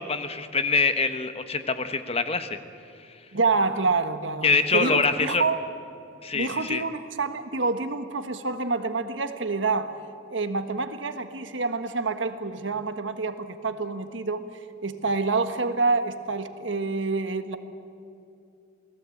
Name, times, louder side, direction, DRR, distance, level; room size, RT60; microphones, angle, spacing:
voice 1, 0.0-2.6 4.4-5.4 6.2-6.8, left 4 dB, 30° left, 9 dB, 1.2 m, -25 dB
voice 2, 3.3-5.6 6.3-9.9 10.3-14.4 14.8-17.6, right 3 dB, 85° right, 9 dB, 1.5 m, -27 dB
28.0 x 18.5 x 8.6 m, 2.6 s
head